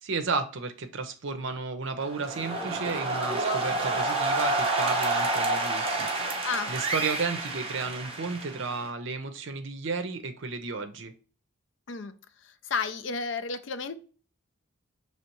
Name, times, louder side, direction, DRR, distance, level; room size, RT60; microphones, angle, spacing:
voice 1, 0.0-11.1, right 4 dB, 65° right, 0.6 m, -33 dB
sound 1, 2.0-8.9, right 2 dB, 25° right, 0.8 m, -29 dB
voice 2, 12.4-14.0, left 5 dB, 60° left, 0.5 m, -32 dB
5.6 x 3.1 x 3.0 m
head